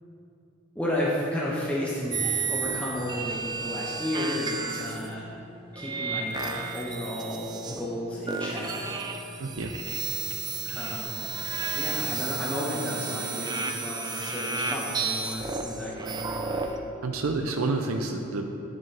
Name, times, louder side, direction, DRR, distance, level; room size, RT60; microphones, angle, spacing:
voice 1, 0.7-5.3 5.7-8.9 10.7-11.3 11.7-16.6, left 1 dB, 5° left, -6 dB, 0.9 m, -32 dB
sound 1, 2.1-5.1 5.8-8.0 8.3-16.8, right 5 dB, 20° right, 0.4 m, -32 dB
sound 2, 2.5-13.2, left 1 dB, 25° left, 1.1 m, -48 dB
voice 2, 9.4-9.7 10.6-10.8 17.0-18.5, right 3 dB, 80° right, 3 dB, 0.6 m, -29 dB
9.8 x 7.4 x 3.4 m, 2.7 s
head